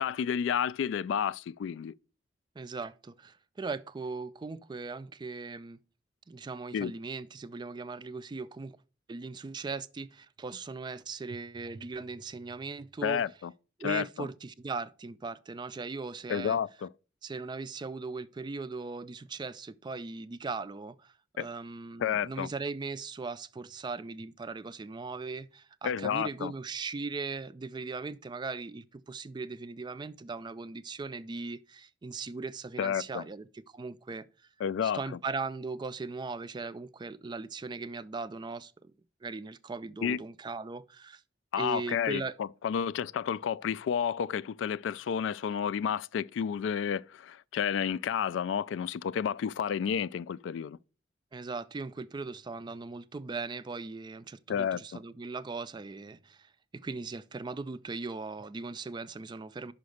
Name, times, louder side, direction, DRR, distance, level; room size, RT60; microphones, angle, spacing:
voice 1, 0.0-1.9 6.7-6.9 13.0-13.5 13.8-14.3 16.3-16.9 21.4-21.5 22.0-22.5 25.8-26.5 32.8-33.2 34.6-35.0 40.0-40.2 41.5-50.8 54.5-55.0, left 8 dB, 85° left, 0.3 m, -31 dB
voice 2, 2.6-5.8 6.3-8.8 9.1-13.2 13.8-16.6 17.2-21.1 21.4-34.3 34.8-38.9 39.2-41.2 41.5-42.4 51.3-59.7, right 4 dB, 25° right, 0.3 m, -39 dB
5.7 x 5.2 x 6.4 m
head